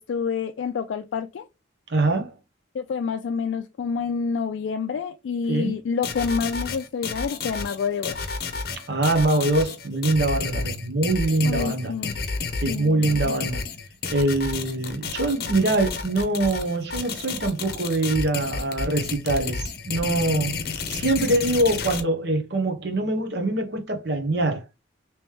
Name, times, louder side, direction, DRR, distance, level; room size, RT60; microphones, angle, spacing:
voice 1, 0.0-1.5 2.7-8.2 11.4-12.2 12.7-13.5, left 6 dB, 75° left, 0.3 m, -28 dB
voice 2, 1.9-2.3 5.5-5.7 8.9-11.9 12.6-13.6 14.1-20.6 20.9-24.6, right 2 dB, 60° right, 0.9 m, -24 dB
sound 1, 6.0-22.0, left 4 dB, 50° left, 0.7 m, -31 dB
3.1 x 3.0 x 3.3 m
head